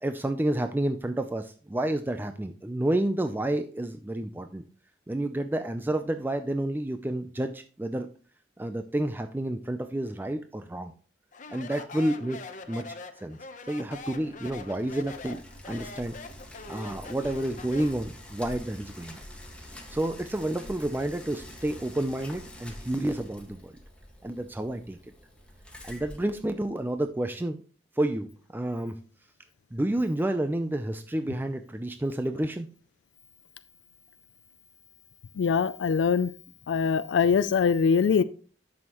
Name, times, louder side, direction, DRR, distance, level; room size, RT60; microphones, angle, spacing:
voice 1, 0.0-4.6 5.1-8.1 8.6-10.9 11.5-12.4 12.7-12.9 13.2-13.4 13.7-16.2 16.7-19.2 19.9-23.7 24.2-25.0 25.8-27.6 28.0-29.0 29.7-32.7, right 1 dB, 10° right, 8 dB, 0.4 m, -30 dB
Speech, 11.3-18.1, left 4 dB, 45° left, 0.8 m, -43 dB
Bicycle, 14.0-27.0, left 1 dB, 5° left, 1.6 m, -46 dB
voice 2, 35.4-36.3 36.7-38.2, left 6 dB, 80° left, 13 dB, 0.3 m, -23 dB
11.0 x 6.3 x 3.0 m, 0.41 s
head